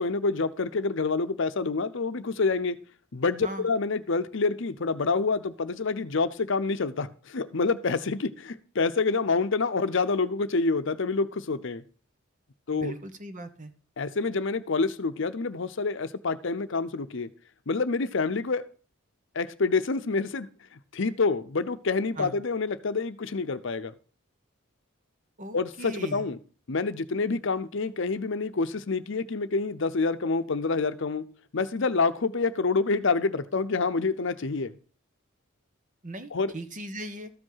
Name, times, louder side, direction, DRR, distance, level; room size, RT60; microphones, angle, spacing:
voice 1, 0.0-2.8 3.1-11.8 12.7-12.9 14.0-17.3 17.7-18.6 19.3-23.9 25.5-26.4 26.7-31.2 31.5-34.7 36.3-36.5, left 4 dB, 65° left, 11 dB, 0.7 m, -27 dB
voice 2, 12.7-13.7 22.2-22.4 25.4-26.3 36.0-37.3, right 1 dB, 40° right, 9 dB, 1.1 m, -38 dB
13.5 x 5.4 x 5.6 m, 0.40 s
head